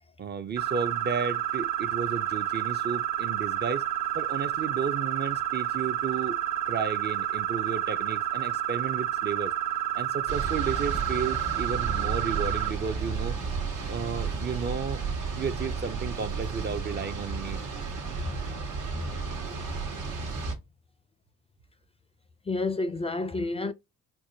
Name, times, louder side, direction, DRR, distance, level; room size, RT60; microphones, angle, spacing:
voice 1, 0.2-3.8 4.1-6.4 6.7-9.5 9.9-13.4 13.8-15.0 15.3-17.6, right 6 dB, 35° right, 0.5 m, -33 dB
sound 1, 0.6-12.7, right 11 dB, 65° right, 1.2 m, -30 dB
sound 2, 10.3-20.5, right 5 dB, 85° right, 1.3 m, -33 dB
voice 2, 22.5-23.7, left 3 dB, 20° left, 0.4 m, -31 dB
4.6 x 2.1 x 2.7 m
cardioid pair, 90°, 30 cm